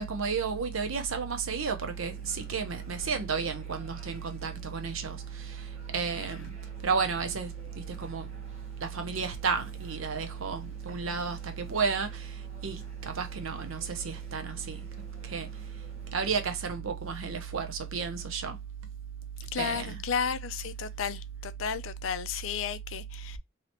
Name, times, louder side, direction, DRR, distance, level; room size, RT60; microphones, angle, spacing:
voice 1, 0.0-5.7 5.9-6.5 6.8-8.3 8.8-12.3 12.6-14.8 15.2-15.5 16.1-18.6 19.6-20.0, right 5 dB, 90° right, 0.8 m, -32 dB
sound 1, 1.9-16.6, left 1 dB, 30° right, 1.2 m, -53 dB
voice 2, 19.5-23.4, left 7 dB, 75° left, 0.4 m, -33 dB
3.2 x 2.8 x 2.9 m
head